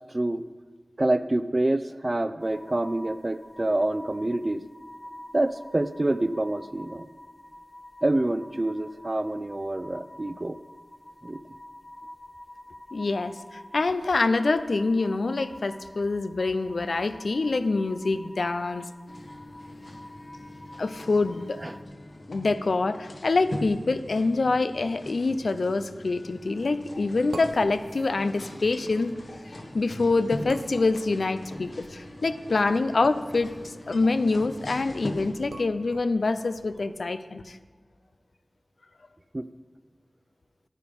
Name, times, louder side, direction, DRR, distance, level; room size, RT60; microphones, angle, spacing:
voice 1, 1.0-4.6 5.3-7.1 8.0-10.6 11.2-11.4 21.6-21.8 39.3-39.5, right 1 dB, 40° right, 13 dB, 0.5 m, -27 dB
sound 1, 2.4-21.8, left 1 dB, 30° left, 1.1 m, -48 dB
voice 2, 12.9-18.9 20.8-21.6 22.3-29.1 29.7-37.6, left 3 dB, 85° left, 12 dB, 0.5 m, -26 dB
sound 2, 19.1-35.3, left 1 dB, 65° left, 1.4 m, -41 dB
sound 3, 26.5-37.0, right 2 dB, 85° right, 0.8 m, -47 dB
10.5 x 9.2 x 5.3 m, 1.5 s
wide cardioid pair, 45°, 0 cm